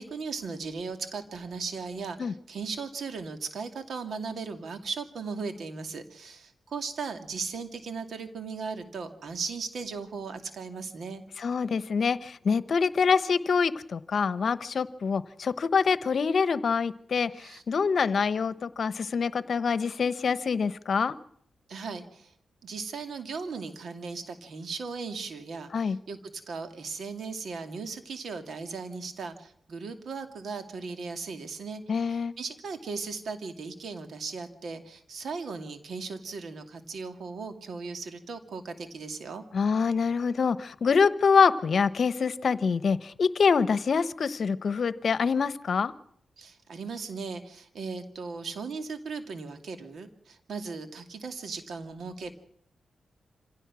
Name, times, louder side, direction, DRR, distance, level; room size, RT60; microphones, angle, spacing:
voice 1, 0.0-11.2 17.4-17.6 21.7-22.3 22.6-39.4 46.4-52.3, right 4 dB, 75° right, 8 dB, 2.3 m, -37 dB
voice 2, 11.4-21.1 25.7-26.0 31.9-32.3 39.5-45.9, left 5 dB, 65° left, 15 dB, 0.9 m, -25 dB
26.0 x 16.5 x 6.2 m, 0.69 s
cardioid pair, 65°, 0 cm